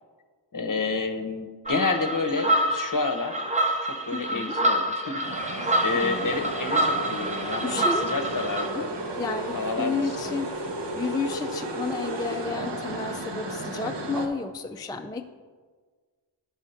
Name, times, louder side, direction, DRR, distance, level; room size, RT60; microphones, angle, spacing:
voice 1, 0.5-3.5 3.8-8.9 9.5-10.2, left 3 dB, 45° left, 6 dB, 0.8 m, -30 dB
sound 1, 1.7-8.7, right 1 dB, 15° right, 0.8 m, -27 dB
voice 2, 4.1-4.6 5.6-6.5 7.6-8.0 8.6-8.9 9.2-15.2, left 4 dB, 10° left, 5 dB, 0.3 m, -32 dB
sound 2, 5.2-14.3, right 1 dB, 75° right, 0.9 m, -33 dB
10.5 x 3.5 x 5.6 m, 1.5 s
wide cardioid pair, 50°, 43 cm